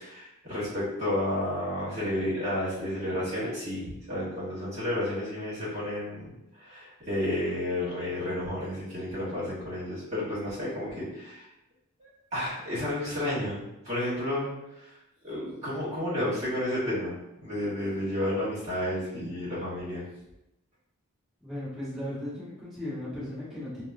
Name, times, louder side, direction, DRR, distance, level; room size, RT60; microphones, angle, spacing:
voice 1, 0.0-11.5 12.0-14.5 14.7-15.0 15.2-17.1 17.4-20.0, left 1 dB, 30° right, -9 dB, 1.3 m, -31 dB
voice 2, 21.4-23.8, left 1 dB, ahead, -12 dB, 1.3 m, -36 dB
3.4 x 2.0 x 2.5 m, 0.89 s
head